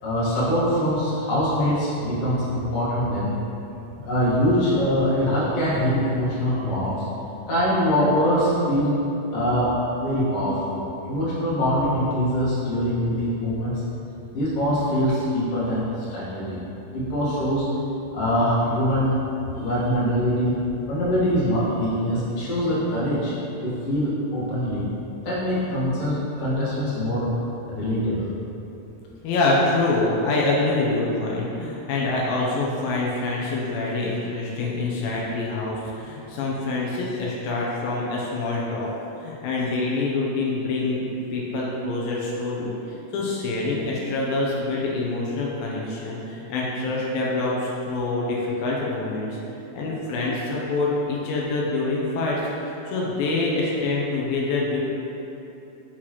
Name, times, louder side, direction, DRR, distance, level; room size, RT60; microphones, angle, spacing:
voice 1, 0.0-3.3 4.0-6.9 7.5-8.9 9.3-13.7 14.3-16.6 16.9-17.6 18.1-19.1 19.5-20.5 20.9-23.3 23.6-24.9 25.2-27.3 27.7-28.3, equal, 50° left, -9 dB, 2.2 m, -23 dB
voice 2, 29.2-38.9 39.2-49.4 49.7-52.4 52.9-54.8, left 2 dB, 85° left, -4 dB, 2.5 m, -25 dB
6.3 x 5.8 x 3.0 m, 3.0 s
omnidirectional pair, 4.1 m